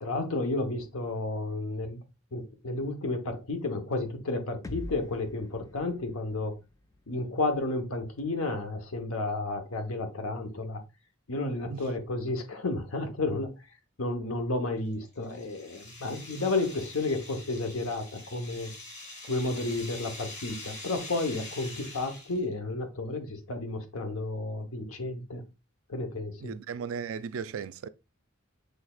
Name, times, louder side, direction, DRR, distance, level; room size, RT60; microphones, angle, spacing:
voice 1, 0.0-2.0 2.3-6.5 7.1-10.8 11.3-13.5 14.0-18.7 19.2-25.4 25.9-26.6, left 2 dB, 80° left, 1.0 m, -32 dB
sound 1, 4.6-8.6, left 1 dB, 15° left, 0.3 m, -46 dB
sound 2, 14.8-22.5, left 2 dB, 35° left, 1.8 m, -44 dB
voice 2, 26.4-27.9, right 6 dB, 70° right, 0.4 m, -36 dB
6.3 x 3.3 x 2.4 m
head